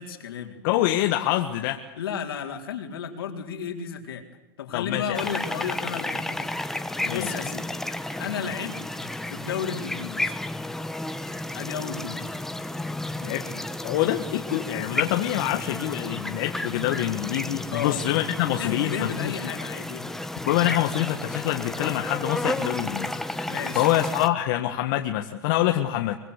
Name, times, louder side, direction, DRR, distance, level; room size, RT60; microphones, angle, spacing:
voice 1, 0.0-0.6 2.0-4.2 4.6-6.5 7.1-7.7 8.2-10.4 11.5-12.2 17.7-18.0 18.6-20.1 23.5-23.9, left 7 dB, 85° left, 3 dB, 4.1 m, -33 dB
voice 2, 0.6-1.8 4.7-5.3 7.0-7.3 13.2-19.3 20.4-23.1 23.7-26.2, left 14 dB, 60° left, 4 dB, 1.7 m, -26 dB
sound 1, 5.1-24.3, left 1 dB, 5° left, 1.3 m, -32 dB
24.5 x 21.0 x 8.3 m, 1.0 s
hypercardioid pair, 125°, 12 cm